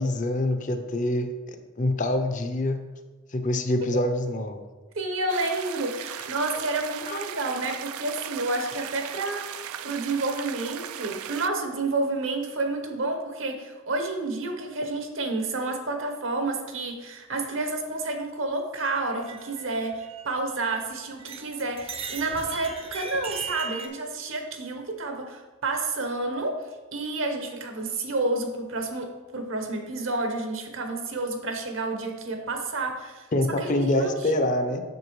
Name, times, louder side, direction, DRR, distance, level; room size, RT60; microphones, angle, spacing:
voice 1, 0.0-2.8 3.3-4.6 7.1-7.2 33.3-34.8, left 1 dB, 35° left, 7 dB, 0.5 m, -25 dB
voice 2, 4.9-26.6 26.9-33.3 33.6-34.1, right 2 dB, 65° right, 4 dB, 0.9 m, -30 dB
sound 1, 5.3-11.5, right 10 dB, 80° right, 0.3 m, -37 dB
sound 2, 18.7-20.9 21.2-23.9, right 5 dB, 25° right, 0.5 m, -39 dB
7.9 x 6.3 x 3.1 m, 1.3 s
head